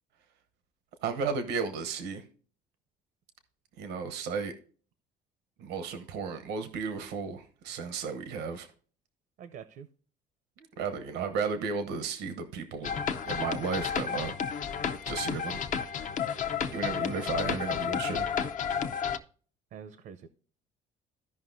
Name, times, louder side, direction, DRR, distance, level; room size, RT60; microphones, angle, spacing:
voice 1, 1.0-2.2 3.8-4.5 5.6-8.7 10.6-14.4 15.1-15.6 16.7-18.3, right 5 dB, 85° right, 8 dB, 0.9 m, -34 dB
voice 2, 9.4-9.9 19.7-20.3, right 7 dB, 65° right, 11 dB, 0.7 m, -45 dB
sound 1, 12.8-19.2, left 7 dB, 50° left, 0.6 m, -32 dB
14.5 x 5.4 x 2.6 m, 0.43 s
cardioid pair, 110°, 17 cm